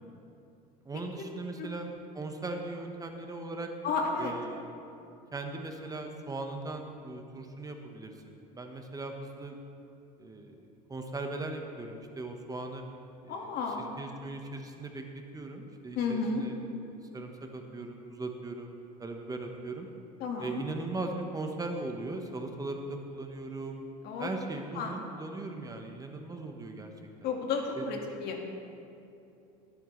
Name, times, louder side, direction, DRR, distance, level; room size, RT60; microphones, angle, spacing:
voice 1, 0.8-3.7 4.2-4.7 5.3-9.5 10.2-10.6 10.9-12.8 13.2-13.5 14.0-15.0 15.3-16.5 16.9-18.7 19.0-19.9 20.4-23.8 24.2-26.9 27.7-27.8, right 2 dB, 20° right, 4 dB, 1.2 m, -39 dB
voice 2, 3.8-4.4 13.3-13.9 16.0-16.5 20.2-20.6 24.0-24.3 24.7-25.0 27.2-28.5, left 4 dB, 60° left, 2 dB, 1.9 m, -32 dB
20.5 x 9.0 x 3.2 m, 2.7 s
supercardioid pair, 95°, 19 cm